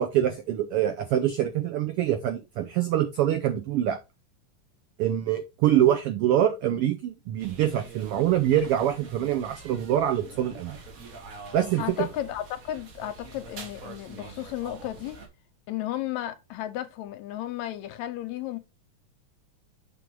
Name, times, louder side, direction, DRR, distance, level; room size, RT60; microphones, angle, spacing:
voice 1, 0.0-4.0 5.0-10.7 11.5-11.8, right 11 dB, 90° right, 1.2 m, -25 dB
sound 1, 7.4-15.3, right 3 dB, 70° right, 0.8 m, -45 dB
voice 2, 11.8-15.2 15.7-18.6, left 13 dB, 80° left, 1.9 m, -34 dB
7.4 x 3.5 x 4.6 m
omnidirectional pair, 3.4 m